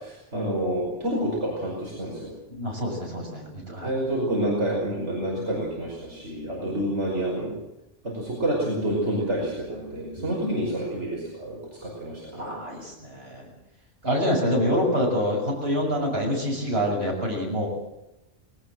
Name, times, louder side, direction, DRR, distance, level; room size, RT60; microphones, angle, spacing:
voice 1, 0.0-2.3 3.8-7.6 8.0-12.6, right 1 dB, 75° right, -3 dB, 5.7 m, -28 dB
voice 2, 2.6-3.9 6.6-6.8 10.2-10.5 12.4-13.5 14.0-17.7, equal, 60° right, 0 dB, 7.0 m, -26 dB
20.0 x 19.5 x 7.8 m, 0.93 s
omnidirectional pair, 1.2 m